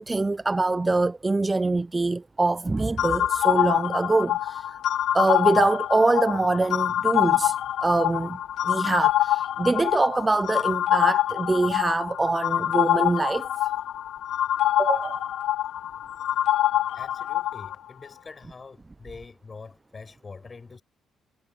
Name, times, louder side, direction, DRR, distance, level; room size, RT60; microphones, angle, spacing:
voice 1, 0.0-4.8 5.1-7.6 7.8-8.4 8.6-13.5 14.8-15.3, right 3 dB, 20° right, 0.3 m, -24 dB
sound 1, 3.0-17.8, left 12 dB, 75° left, 0.8 m, -25 dB
voice 2, 16.9-20.8, left 4 dB, 30° left, 7.6 m, -44 dB
cardioid pair, 90°, 0 cm